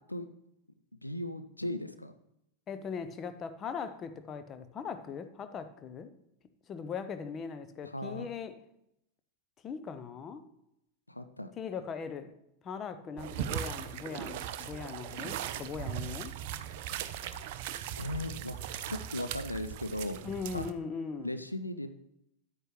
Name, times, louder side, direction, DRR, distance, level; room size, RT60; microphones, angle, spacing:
voice 1, 1.0-2.1 7.8-8.3 11.1-11.5 18.0-18.6 18.9-20.2 20.5-20.7 21.2-21.9, left 1 dB, 85° left, 10 dB, 0.5 m, -37 dB
voice 2, 2.7-6.1 6.7-8.5 9.6-10.4 11.6-12.3 12.6-16.3 20.2-21.3, left 6 dB, 25° left, 10 dB, 0.8 m, -39 dB
sound 1, 13.2-20.7, right 10 dB, 50° right, 0.6 m, -39 dB
9.9 x 9.1 x 3.2 m, 0.80 s
figure-of-eight pair, 90°, 0 cm